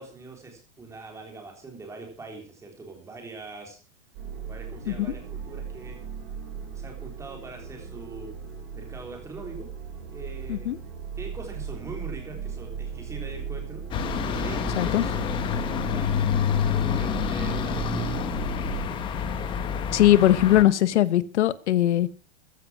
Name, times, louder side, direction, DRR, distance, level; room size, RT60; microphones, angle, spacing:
voice 1, 0.0-3.8 4.4-6.0 6.7-8.4 8.7-9.7 10.1-10.7 11.2-18.1, right 3 dB, 10° right, 3.7 m, -42 dB
sound 1, 4.1-19.0, right 7 dB, 35° right, 6.8 m, -37 dB
sound 2, 13.9-20.6, left 7 dB, 15° left, 1.0 m, -27 dB
voice 2, 19.9-22.1, left 13 dB, 70° left, 1.2 m, -20 dB
15.0 x 10.0 x 6.1 m
supercardioid pair, 175°, 36 cm